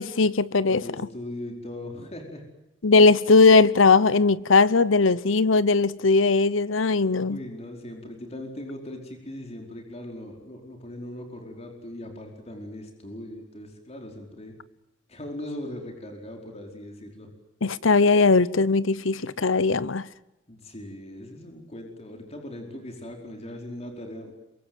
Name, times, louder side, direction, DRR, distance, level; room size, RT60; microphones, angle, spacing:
voice 1, 0.0-0.8 2.8-7.4 17.6-20.0, left 3 dB, 75° left, 0.9 m, -19 dB
voice 2, 0.7-2.4 7.2-14.5 15.1-17.3 20.5-24.3, left 1 dB, 35° left, 4.8 m, -39 dB
27.5 x 23.5 x 8.0 m
head